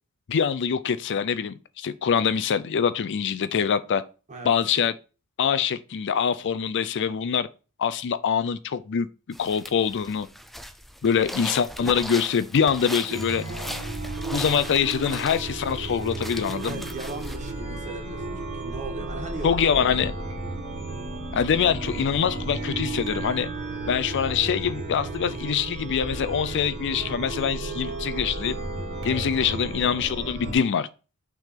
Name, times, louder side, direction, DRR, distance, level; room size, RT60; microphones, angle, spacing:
voice 1, 0.3-4.0 4.4-4.9 5.4-7.5 7.8-9.1 9.4-10.3 11.0-13.4 14.3-16.8 19.4-20.1 21.3-23.5 23.9-28.6 29.0-30.9, left 7 dB, 55° left, 0.4 m, -24 dB
sound 1, 9.3-17.5, equal, ahead, 0.5 m, -38 dB
Chime, 13.1-30.5, right 2 dB, 75° right, 1.7 m, -33 dB
voice 2, 16.6-20.0 29.0-29.3, right 2 dB, 35° right, 1.6 m, -38 dB
5.9 x 3.6 x 5.7 m
head